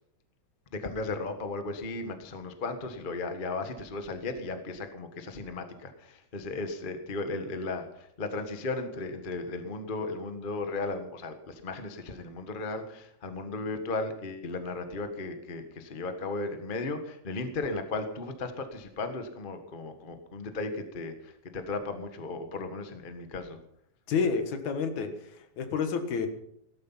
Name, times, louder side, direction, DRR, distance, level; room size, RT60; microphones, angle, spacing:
voice 1, 0.7-23.6, left 3 dB, 50° left, 7 dB, 0.6 m, -35 dB
voice 2, 24.1-26.3, left 5 dB, 65° left, 7 dB, 2.9 m, -29 dB
16.5 x 13.5 x 5.7 m, 0.74 s
omnidirectional pair, 3.7 m